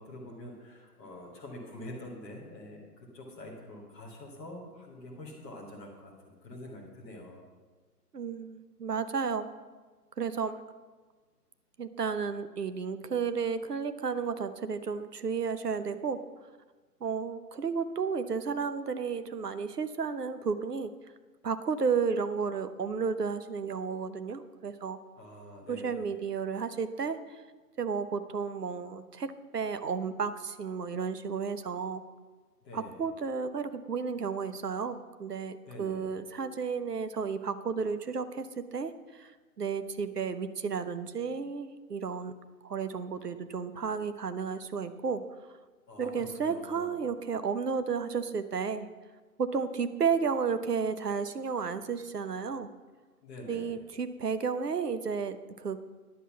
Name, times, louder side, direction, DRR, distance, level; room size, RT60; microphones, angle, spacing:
voice 1, 0.0-7.4 25.2-26.1 32.6-33.0 35.7-36.1 45.9-47.0 53.2-53.8, left 1 dB, 5° left, -5 dB, 0.9 m, -46 dB
voice 2, 8.1-9.5 10.2-10.6 11.8-16.2 17.0-20.9 21.4-25.0 25.7-27.4 27.8-32.0 32.7-39.3 39.6-42.3 42.6-45.2 46.0-48.9 49.4-52.7 53.5-55.8, right 5 dB, 75° right, 11 dB, 0.9 m, -32 dB
10.0 x 8.0 x 5.7 m, 1.4 s
figure-of-eight pair, 135°, 48 cm